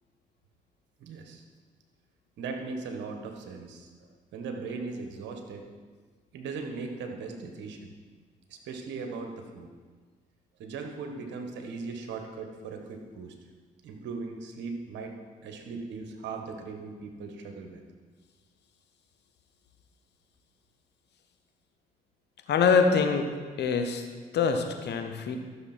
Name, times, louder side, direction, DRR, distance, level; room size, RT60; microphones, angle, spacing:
voice 1, 1.0-1.4 2.4-3.9 4.3-5.6 6.3-7.9 8.5-9.7 10.6-13.3 13.8-15.1 15.4-17.8, right 4 dB, 75° right, 4 dB, 1.5 m, -38 dB
voice 2, 22.5-23.3 23.6-24.1 24.3-25.4, left 5 dB, 65° left, 6 dB, 1.3 m, -24 dB
13.5 x 6.7 x 4.4 m, 1.5 s
hypercardioid pair, 50°, 19 cm